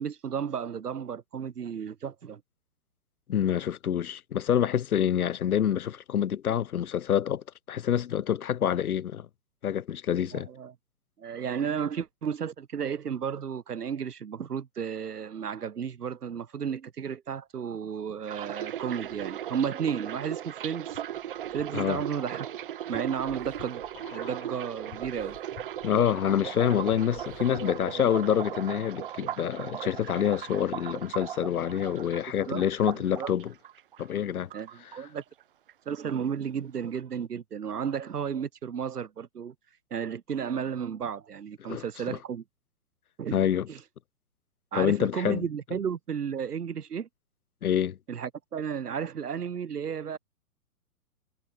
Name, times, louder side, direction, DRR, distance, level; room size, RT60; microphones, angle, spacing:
voice 1, 0.0-2.4 10.3-10.7 11.2-21.0 21.5-22.5 22.9-23.8 24.1-25.4 27.6-28.3 32.5-32.6 32.9-33.3 34.5-35.2 35.9-39.5 39.9-42.4 43.2-43.4 43.7-43.8 44.7-47.1 48.1-50.2, right 7 dB, 90° right, 0.7 m, -33 dB
voice 2, 3.3-9.3 9.6-10.5 21.7-22.0 25.8-33.5 34.0-34.5 41.7-42.2 43.3-43.7 44.7-45.4 47.6-48.0, left 9 dB, 70° left, 0.7 m, -27 dB
sound 1, 18.3-34.2 34.5-35.4 35.7-36.0, right 11 dB, 35° right, 0.6 m, -38 dB
sound 2, 19.0-19.7 20.2-28.0 28.3-28.4, left 25 dB, 30° left, 1.6 m, -51 dB
figure-of-eight pair, 120°, 45 cm